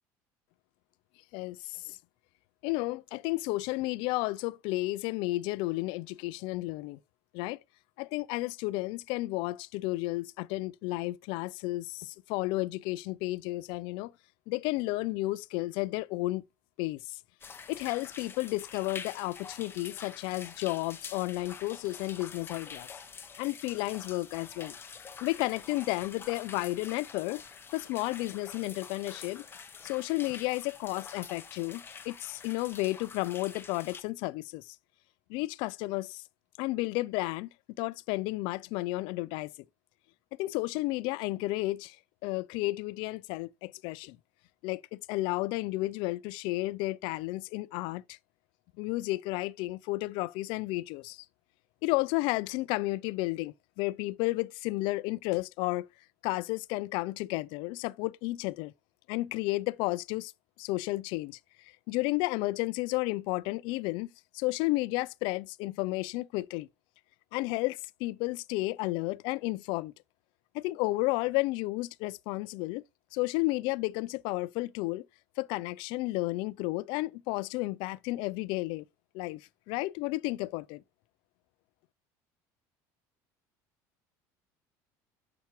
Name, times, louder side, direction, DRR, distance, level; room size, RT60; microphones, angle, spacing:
voice 1, 1.3-2.0 2.6-7.0 7.3-7.6 8.0-14.1 14.5-16.4 16.8-17.2 17.7-22.9 23.4-24.7 25.2-27.4 27.7-29.4 29.8-34.8 35.3-36.2 36.6-37.5 37.8-39.5 40.4-42.0 42.2-44.2 44.6-48.2 48.8-51.2 51.8-55.9 56.2-58.7 59.1-60.3 60.6-61.4 61.9-64.1 64.3-66.7 67.3-69.9 70.5-72.8 73.1-75.0 75.4-78.8 79.1-80.8, left 20 dB, 70° left, 0.4 m, -32 dB
sound 1, 17.4-34.0, left 6 dB, 25° left, 0.9 m, -47 dB
6.9 x 5.8 x 3.0 m
supercardioid pair, 100°, 9 cm